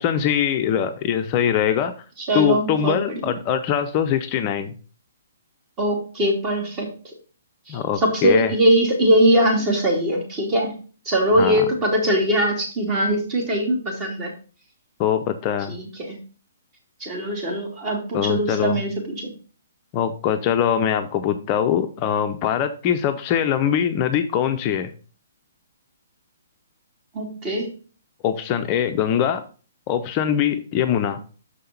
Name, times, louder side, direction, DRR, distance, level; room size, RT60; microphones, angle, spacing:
voice 1, 0.0-2.0 2.3-4.7 7.7-8.5 11.4-11.6 15.0-15.8 18.1-18.8 19.9-24.9 28.2-29.4 29.9-31.2, left 9 dB, 30° left, 7 dB, 0.6 m, -22 dB
voice 2, 2.3-3.3 5.8-7.1 7.7-10.8 11.0-14.3 15.7-16.2 17.0-19.3 27.1-27.7, right 1 dB, 25° right, 2 dB, 2.8 m, -21 dB
6.6 x 5.6 x 5.5 m, 0.38 s
figure-of-eight pair, 125°, 0 cm